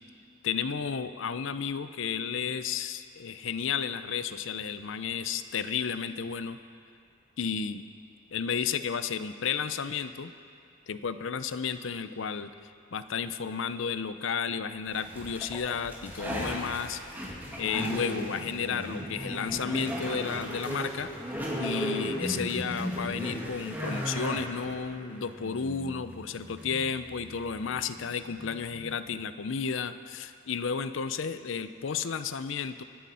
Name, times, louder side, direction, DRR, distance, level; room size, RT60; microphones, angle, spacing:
voice 1, 0.4-6.6 7.4-7.8 8.3-10.3 10.9-17.0 17.6-21.1 21.6-32.8, left 6 dB, 65° left, 11 dB, 0.5 m, -32 dB
sound 1, 14.9-28.9, equal, 10° right, 1.9 m, -36 dB
24.5 x 9.3 x 4.3 m, 2.4 s
head